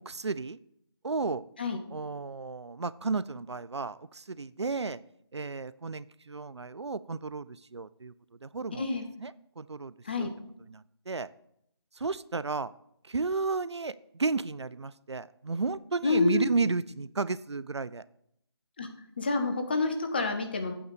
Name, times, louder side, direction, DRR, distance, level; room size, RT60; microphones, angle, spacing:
voice 1, 0.1-0.6 1.0-1.4 1.9-5.0 5.3-8.1 8.4-8.9 9.2-10.3 10.7-11.3 12.0-12.7 13.1-18.0, right 4 dB, 85° right, 18 dB, 0.4 m, -33 dB
voice 2, 8.7-9.1 10.0-10.3 16.0-16.5 18.8-18.9 19.2-20.7, left 3 dB, 20° left, 6 dB, 0.6 m, -28 dB
8.5 x 3.9 x 6.9 m, 0.73 s
figure-of-eight pair, 160°, 14 cm